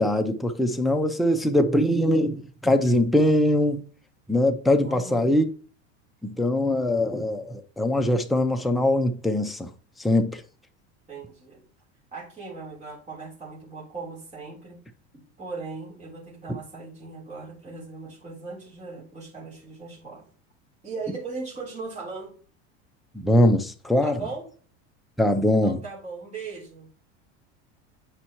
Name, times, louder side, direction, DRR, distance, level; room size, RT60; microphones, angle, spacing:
voice 1, 0.0-3.8 4.3-5.4 6.2-9.7 10.0-10.4 23.1-24.2 25.2-25.8, left 1 dB, ahead, 0.5 m, -22 dB
voice 2, 4.8-5.2 11.1-11.6 12.1-14.8 15.4-20.3 20.8-22.3 24.0-24.4 25.6-26.9, right 4 dB, 20° right, 3.6 m, -38 dB
9.7 x 5.5 x 3.0 m
supercardioid pair, 125°, 33 cm